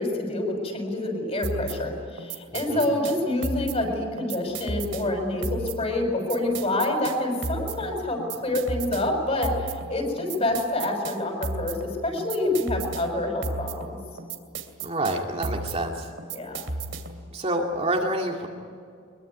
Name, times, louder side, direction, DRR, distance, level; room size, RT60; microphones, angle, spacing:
voice 1, 0.0-11.8 12.0-14.0 16.3-16.6, left 1 dB, 30° left, 3 dB, 6.3 m, -27 dB
sound 1, 1.4-17.3, right 3 dB, 65° right, 2.5 m, -35 dB
voice 2, 2.5-2.9 14.8-16.1 17.3-18.5, right 1 dB, 30° right, 1 dB, 2.2 m, -28 dB
23.5 x 22.5 x 9.6 m, 2.3 s
head